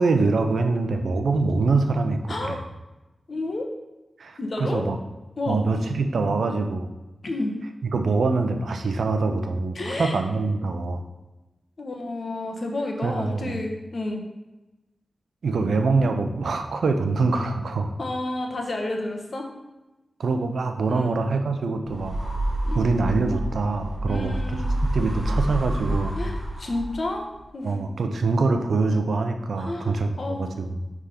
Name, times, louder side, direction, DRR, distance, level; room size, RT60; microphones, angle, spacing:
voice 1, 0.0-2.6 4.2-5.0 5.5-6.9 7.9-11.0 13.0-13.6 15.4-17.9 20.2-22.3 22.7-24.6 24.9-26.1 27.6-30.8, right 3 dB, 85° right, 6 dB, 0.6 m, -24 dB
voice 2, 2.3-2.6 3.3-3.7 4.4-4.8 5.4-5.6 7.2-7.5 9.7-10.2 11.8-14.2 18.0-19.5 20.9-21.2 22.7-22.8 24.1-24.7 26.2-27.9 29.6-30.5, left 2 dB, 60° left, 2 dB, 1.1 m, -30 dB
sound 1, 21.9-27.2, right 1 dB, 25° right, 1.8 m, -28 dB
5.6 x 3.6 x 5.0 m, 1.0 s
cardioid pair, 45°, 0 cm